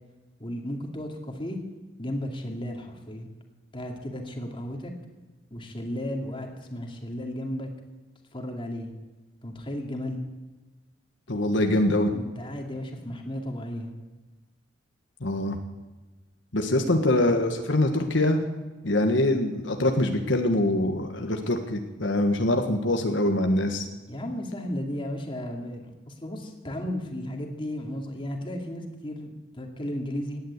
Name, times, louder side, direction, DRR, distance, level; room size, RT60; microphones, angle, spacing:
voice 1, 0.4-1.6 2.0-3.3 3.7-4.9 5.5-7.7 8.3-8.9 9.4-10.2 12.1-13.9 16.7-17.0 24.1-30.4, left 1 dB, 25° left, 2 dB, 2.4 m, -34 dB
voice 2, 11.3-12.1 15.2-15.6 16.5-18.4 18.8-23.9, left 1 dB, 75° left, 4 dB, 1.5 m, -24 dB
17.5 x 10.0 x 8.3 m, 1.2 s
head